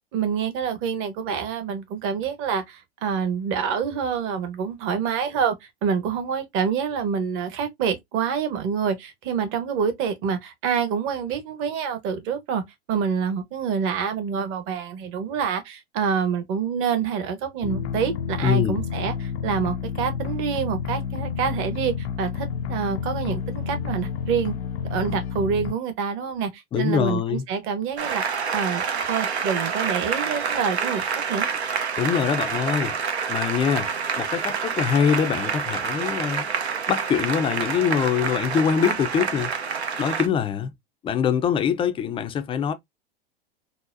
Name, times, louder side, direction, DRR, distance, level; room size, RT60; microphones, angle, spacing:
voice 1, 0.1-5.5 5.8-12.6 12.9-24.5 24.9-31.5, right 7 dB, 40° right, 1.0 m, -27 dB
sound 1, 17.6-25.7, left 7 dB, 75° left, 0.5 m, -30 dB
voice 2, 18.4-18.8 26.7-27.5 32.0-33.0 33.3-36.5 36.9-39.5 40.0-40.7 41.0-42.7, left 7 dB, 15° left, 0.4 m, -24 dB
Applause, 28.0-40.3, right 6 dB, 90° right, 0.7 m, -27 dB
4.0 x 2.0 x 2.5 m
hypercardioid pair, 95°, 32 cm